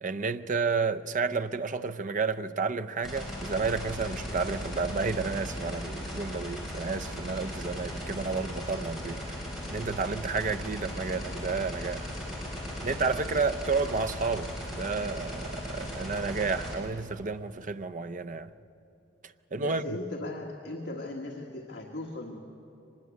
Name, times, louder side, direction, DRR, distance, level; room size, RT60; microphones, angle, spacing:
voice 1, 0.0-9.2 9.7-12.1 12.8-18.5 19.5-20.0, right 4 dB, 40° right, 0.6 m, -31 dB
sound 1, 3.0-16.8, equal, ahead, 5.8 m, -37 dB
voice 2, 19.6-22.4, left 2 dB, 60° left, 1.7 m, -38 dB
24.0 x 20.5 x 8.4 m
head